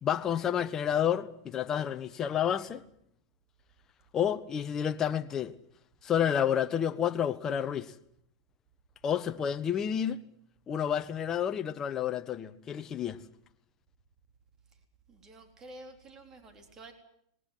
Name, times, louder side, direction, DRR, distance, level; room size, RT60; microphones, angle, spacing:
voice 1, 0.0-2.8 4.1-5.5 6.0-7.9 9.0-10.2 10.7-13.2, left 9 dB, 25° left, 1.2 m, -30 dB
voice 2, 15.1-16.9, right 2 dB, 25° right, 3.8 m, -50 dB
20.5 x 19.5 x 9.4 m
supercardioid pair, 135°, 2 cm